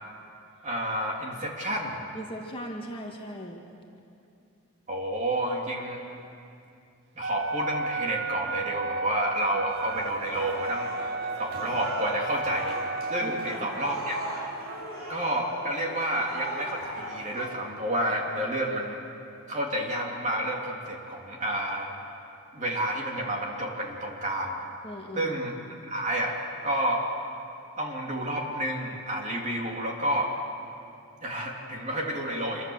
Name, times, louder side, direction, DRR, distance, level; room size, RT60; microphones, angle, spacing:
voice 1, 0.6-2.0 4.9-6.0 7.1-10.9 11.4-12.8 13.1-14.2 15.1-19.0 19.5-21.9 22.5-24.6 25.1-25.5 25.8-26.4 26.6-27.0 27.8-30.3 31.2-32.6, right 1 dB, 35° right, -1 dB, 3.2 m, -30 dB
voice 2, 2.1-3.6 13.2-13.3 24.8-25.3, equal, 25° left, 0 dB, 1.9 m, -38 dB
Wind instrument woodwind instrument, 7.2-13.7, right 3 dB, 50° right, 0.6 m, -34 dB
sound 1, 9.7-17.5, right 1 dB, 80° right, 4.0 m, -38 dB
26.5 x 23.0 x 7.3 m, 2.6 s
head